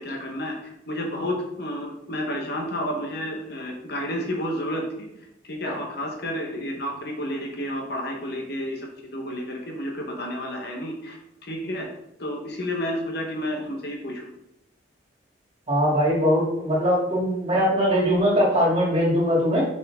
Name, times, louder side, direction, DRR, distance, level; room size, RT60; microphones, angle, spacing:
voice 1, 0.0-4.8 5.5-11.9 12.2-14.3, equal, 55° left, 1 dB, 1.2 m, -31 dB
voice 2, 15.7-19.6, equal, 30° right, -5 dB, 2.8 m, -21 dB
6.5 x 5.6 x 3.7 m, 0.84 s
head